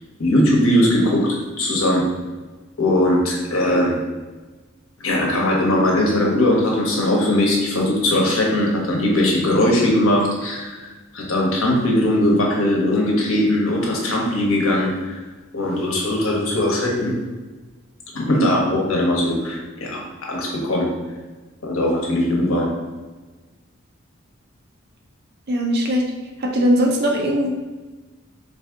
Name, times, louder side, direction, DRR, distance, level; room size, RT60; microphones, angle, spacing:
voice 1, 0.2-2.0 2.8-4.0 5.0-10.9 11.1-15.2 15.5-17.2 18.1-20.9 21.6-22.7, left 1 dB, 80° left, -2 dB, 1.0 m, -20 dB
voice 2, 25.5-26.0 26.4-27.5, equal, 50° right, 0 dB, 0.7 m, -19 dB
4.0 x 2.7 x 3.5 m, 1.3 s
head